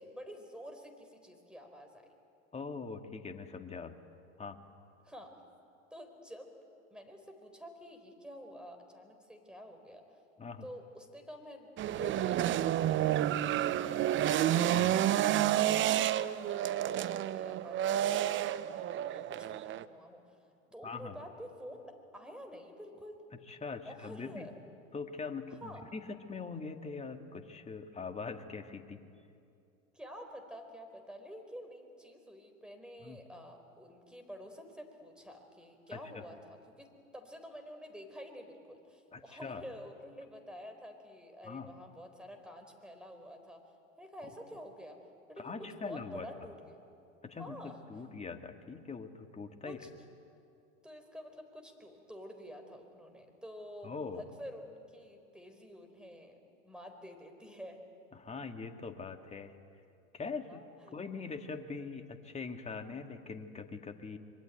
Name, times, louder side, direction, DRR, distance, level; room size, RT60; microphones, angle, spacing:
voice 1, 0.0-2.1 5.0-5.4 5.9-6.5 6.9-10.0 10.6-14.5 15.0-16.8 17.3-20.3 20.7-23.2 23.9-24.5 25.6-25.8 29.9-43.6 44.0-45.0 45.3-46.6 47.4-47.9 49.6-49.9 50.8-57.8 60.5-61.0, equal, ahead, 5 dB, 4.2 m, -49 dB
voice 2, 2.5-4.0 4.4-4.6 10.4-10.7 14.7-14.9 20.8-21.2 23.5-24.5 24.9-29.0 33.0-33.2 35.9-36.2 39.1-39.6 41.4-41.7 45.4-46.5 47.2-49.8 53.8-54.2 58.1-59.5 60.1-60.7 60.9-64.2, left 4 dB, 15° left, 6 dB, 2.0 m, -42 dB
sound 1, 11.8-19.8, right 12 dB, 30° right, 0.8 m, -30 dB
25.0 x 23.5 x 9.3 m, 2.5 s
hypercardioid pair, 95°, 41 cm